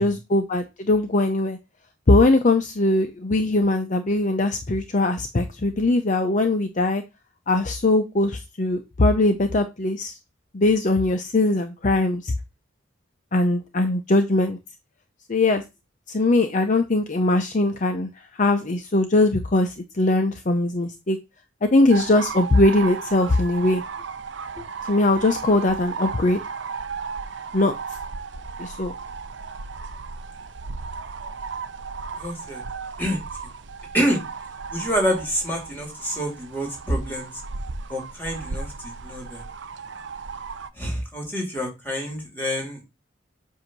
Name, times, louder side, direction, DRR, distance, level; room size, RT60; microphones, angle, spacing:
voice 1, 0.0-1.6 2.1-7.0 7.5-10.1 10.5-12.3 13.3-14.6 15.3-15.6 16.1-21.2 21.6-23.8 24.9-26.4 27.5-27.7 28.6-28.9, left 2 dB, 40° left, 6 dB, 0.6 m, -21 dB
sound 1, 21.9-40.7, right 5 dB, 65° right, 0.7 m, -35 dB
voice 2, 32.2-32.6 33.0-33.2 33.9-34.2 34.7-37.3 37.9-39.5 40.8-42.8, equal, 10° left, 1 dB, 2.6 m, -27 dB
8.0 x 2.7 x 6.0 m, 0.24 s
head